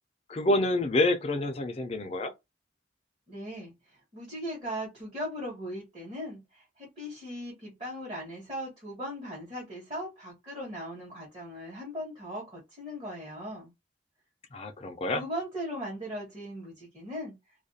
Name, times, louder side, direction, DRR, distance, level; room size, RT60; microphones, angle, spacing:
voice 1, 0.3-2.3 14.5-15.2, left 2 dB, 35° left, 0.4 m, -27 dB
voice 2, 3.3-13.7 15.1-17.3, equal, 30° right, 1.1 m, -38 dB
2.4 x 2.2 x 2.7 m
head